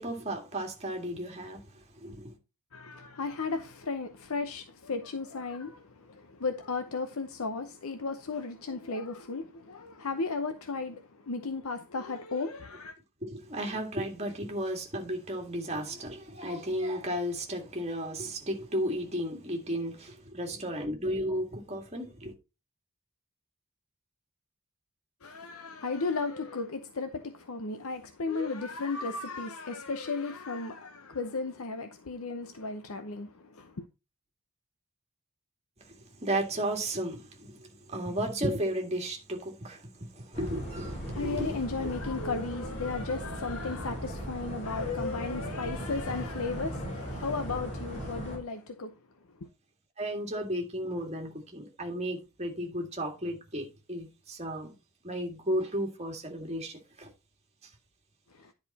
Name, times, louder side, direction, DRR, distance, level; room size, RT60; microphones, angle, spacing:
voice 1, 0.0-1.7 2.0-2.4 13.2-22.3 35.8-41.6 50.0-54.7 55.0-57.1 57.6-57.7, right 1 dB, 30° right, 1.9 m, -34 dB
voice 2, 2.7-12.9 25.2-33.9 41.0-49.0 49.4-49.5 58.3-58.5, left 4 dB, 75° left, 0.7 m, -35 dB
sound 1, 40.3-48.4, equal, 30° left, 4.2 m, -38 dB
10.5 x 4.8 x 4.1 m
head